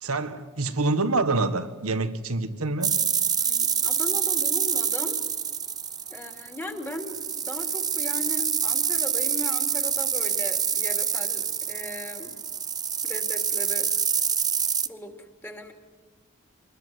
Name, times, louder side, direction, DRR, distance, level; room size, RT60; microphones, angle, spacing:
voice 1, 0.0-2.9, right 3 dB, 80° right, 11 dB, 1.7 m, -26 dB
sound 1, 2.8-14.9, right 7 dB, 20° right, 0.7 m, -26 dB
voice 2, 3.4-5.2 6.1-12.4 13.0-13.9 14.8-15.7, left 1 dB, 10° left, 4 dB, 2.9 m, -38 dB
25.5 x 20.5 x 9.7 m, 1.3 s
head